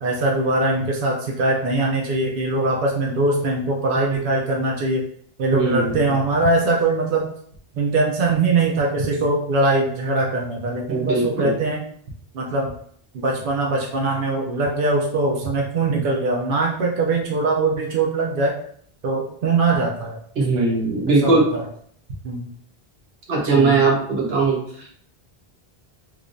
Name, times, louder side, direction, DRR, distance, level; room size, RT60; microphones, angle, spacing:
voice 1, 0.0-5.0 5.4-7.3 7.8-11.8 12.3-12.7 13.1-18.5 19.0-20.2 20.5-20.7 21.2-21.6 22.2-22.5 23.5-23.8, right 2 dB, 60° right, -1 dB, 0.7 m, -22 dB
voice 2, 5.5-6.1 10.9-11.5 20.4-21.5 23.3-24.9, right 3 dB, 80° right, -2 dB, 1.2 m, -20 dB
4.6 x 2.3 x 2.5 m, 0.62 s
omnidirectional pair, 1.0 m